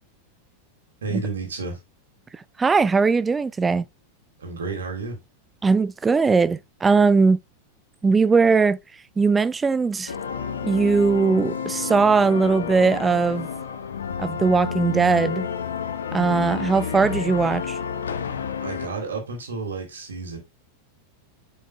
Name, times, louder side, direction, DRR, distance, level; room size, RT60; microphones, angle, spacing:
voice 1, 1.0-1.8 4.4-5.2 18.6-20.4, right 4 dB, 65° right, 3.0 m, -31 dB
voice 2, 2.6-3.9 5.6-7.4 8.0-8.8 9.2-10.1 10.6-13.5 14.2-15.5 16.1-17.8, right 4 dB, 15° right, 0.4 m, -19 dB
sound 1, 10.1-18.9, left 6 dB, 65° left, 0.9 m, -30 dB
10.0 x 6.3 x 2.2 m
figure-of-eight pair, 90°, 0 cm